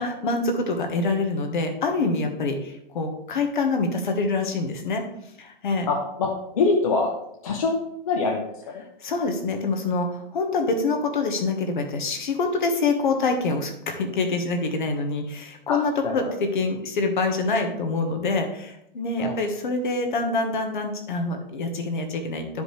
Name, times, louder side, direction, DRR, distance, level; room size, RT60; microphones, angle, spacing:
voice 1, 0.0-5.0 5.4-5.9 9.0-22.6, left 3 dB, 55° left, 4 dB, 1.4 m, -26 dB
voice 2, 5.9-6.3 6.5-7.1 7.4-8.4 8.7-8.8 15.7-16.3 19.2-19.4, left 3 dB, 35° left, 0 dB, 0.8 m, -24 dB
11.5 x 5.1 x 3.3 m, 0.78 s
hypercardioid pair, 180°, 30 cm